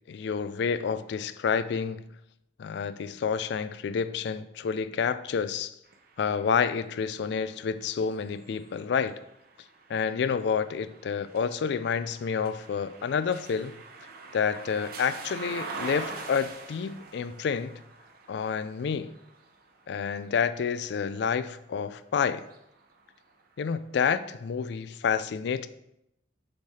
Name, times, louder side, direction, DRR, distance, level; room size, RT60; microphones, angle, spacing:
voice 1, 0.1-2.0 2.6-5.7 6.2-9.2 9.9-13.8 14.3-17.8 18.3-19.1 19.9-22.5 23.6-25.7, left 6 dB, 60° left, 13 dB, 0.3 m, -29 dB
sound 1, 5.8-21.8 22.3-23.6, right 4 dB, 50° right, 0.7 m, -45 dB
7.0 x 3.3 x 4.2 m, 0.82 s
head